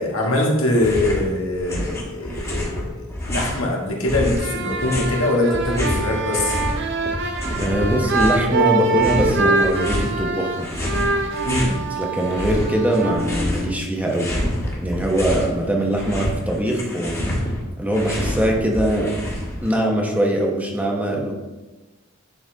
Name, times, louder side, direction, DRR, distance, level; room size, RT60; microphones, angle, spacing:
voice 1, 0.0-6.6 11.4-11.8, left 1 dB, 80° left, -1 dB, 1.6 m, -22 dB
sound 1, 0.7-1.3 1.5-3.6 4.1-6.8 7.0-8.5 8.9-10.1 10.6-11.8 12.2-13.7 14.0-15.5 15.8-19.7, left 1 dB, 15° left, 1.5 m, -27 dB
sound 2, 4.3-14.1, right 3 dB, 60° right, 0.7 m, -25 dB
voice 2, 7.6-10.7 12.0-14.3 14.8-17.2 17.8-19.1 19.6-21.3, right 1 dB, 10° right, -1 dB, 0.9 m, -22 dB
10.0 x 4.0 x 3.9 m, 1.1 s
head